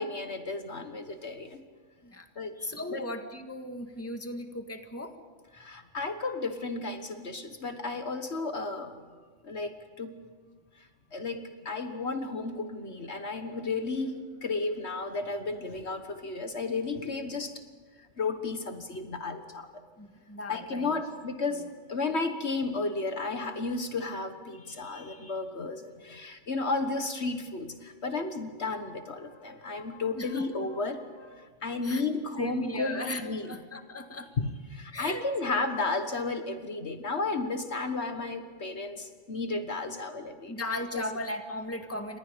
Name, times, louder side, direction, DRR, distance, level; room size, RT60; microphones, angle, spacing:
voice 1, 0.0-1.6 2.4-3.0 5.5-8.9 9.4-10.2 11.1-17.5 18.2-19.7 20.5-33.5 34.4-40.5 40.9-41.1, left 3 dB, 60° left, 7 dB, 1.7 m, -33 dB
voice 2, 2.6-5.1 20.0-20.9 21.5-21.7 30.1-30.4 31.8-32.1 32.4-33.2 33.5-34.3 34.9-35.6 40.5-42.2, left 1 dB, 10° left, 5 dB, 1.7 m, -37 dB
30.0 x 26.0 x 5.2 m, 1.5 s
omnidirectional pair, 1.3 m